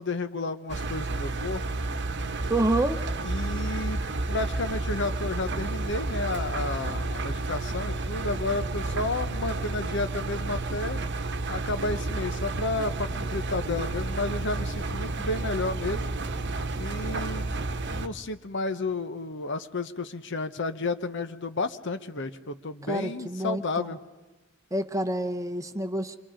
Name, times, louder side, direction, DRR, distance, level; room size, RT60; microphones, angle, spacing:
voice 1, 0.0-1.6 3.2-4.0 4.3-11.0 11.5-16.1 16.7-17.6 17.9-24.0, left 3 dB, 60° left, 10 dB, 1.0 m, -32 dB
Engine, 0.7-18.1, right 2 dB, 55° right, 1.1 m, -31 dB
voice 2, 2.5-3.0 22.9-24.0 24.7-26.2, right 1 dB, 15° right, 9 dB, 0.8 m, -28 dB
Bass guitar, 13.1-19.3, left 2 dB, 20° left, 1.3 m, -53 dB
27.5 x 24.5 x 5.1 m, 1.1 s
head